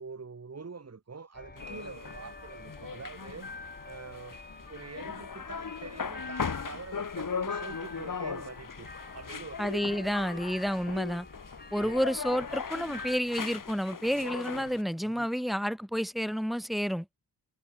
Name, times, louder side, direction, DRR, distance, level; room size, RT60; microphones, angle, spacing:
voice 1, 0.0-4.4 4.7-9.6 10.0-10.4 11.8-11.9 15.0-15.5, right 4 dB, 35° right, 4.2 m, -45 dB
sound 1, 1.3-13.2, left 3 dB, 25° left, 6.9 m, -47 dB
sound 2, 1.6-14.8, left 6 dB, 50° left, 3.4 m, -39 dB
voice 2, 9.6-11.3 11.7-17.1, equal, ahead, 1.6 m, -30 dB
wide cardioid pair, 150°, 41 cm